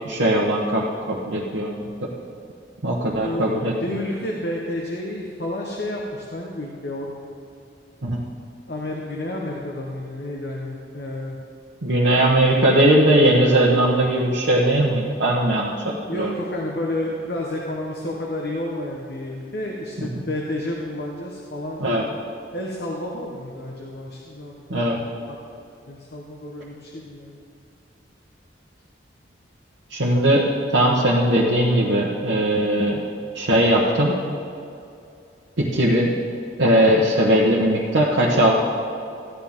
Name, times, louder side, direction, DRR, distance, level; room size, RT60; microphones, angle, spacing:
voice 1, 0.0-1.8 2.8-3.7 8.0-8.2 11.8-15.8 16.2-16.3 21.8-22.0 24.7-25.0 29.9-30.4 30.7-33.0 33.3-34.2 35.7-36.1 36.6-38.5, right 1 dB, 90° right, -5 dB, 1.2 m, -19 dB
voice 2, 3.2-7.1 8.7-11.4 16.1-22.1 22.5-25.4 25.9-27.4, left 1 dB, 55° left, -1 dB, 1.1 m, -31 dB
14.5 x 9.6 x 3.6 m, 2.5 s
head